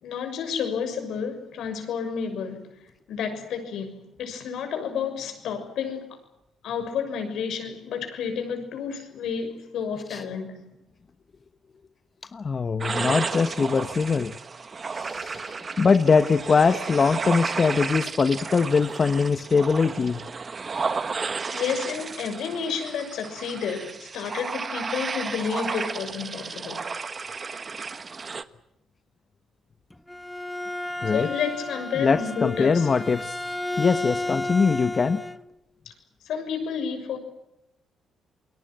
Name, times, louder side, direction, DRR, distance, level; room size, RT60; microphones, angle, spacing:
voice 1, 0.0-2.8 3.1-6.2 6.6-10.7 21.5-26.8 31.1-32.9 36.2-37.2, left 6 dB, 80° left, 6.5 m, -31 dB
voice 2, 12.3-14.3 14.9-20.2 31.0-31.3 32.0-35.2, left 5 dB, 35° left, 1.1 m, -22 dB
sound 1, 12.8-28.4, right 4 dB, 35° right, 1.4 m, -33 dB
Bowed string instrument, 29.9-35.4, left 2 dB, 5° left, 1.1 m, -32 dB
28.5 x 22.0 x 7.8 m
cardioid pair, 90°, 0 cm